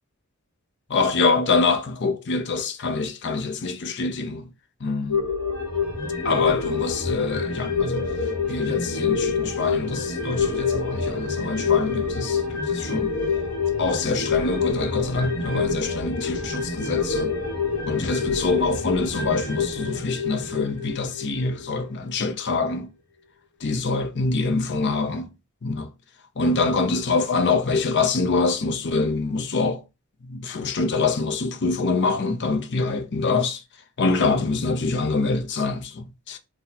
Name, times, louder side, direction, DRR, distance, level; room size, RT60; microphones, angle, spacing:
voice 1, 0.9-4.5 4.8-5.3 6.2-8.1 8.5-13.1 13.8-17.3 17.9-22.9 23.6-25.3 25.6-25.9 26.4-29.8 30.2-33.6 34.0-36.4, left 3 dB, 50° left, 0.5 m, -25 dB
sound 1, 5.1-21.9 22.2-22.3, left 5 dB, 80° left, 1.1 m, -27 dB
4.0 x 2.2 x 2.7 m
head